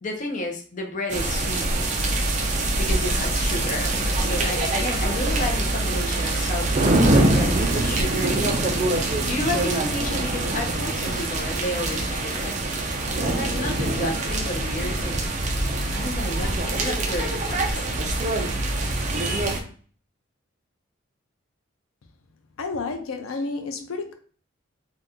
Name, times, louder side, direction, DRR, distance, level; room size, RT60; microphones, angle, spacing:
voice 1, 0.0-1.9 2.8-6.9 7.3-8.6 9.2-12.5 13.3-15.2 15.9-18.0, left 1 dB, 40° left, 0.5 m, -32 dB
sound 1, 1.1-19.6, right 2 dB, 35° right, 0.4 m, -24 dB
voice 2, 22.6-24.1, left 3 dB, 85° left, 0.4 m, -30 dB
2.8 x 2.2 x 3.5 m
head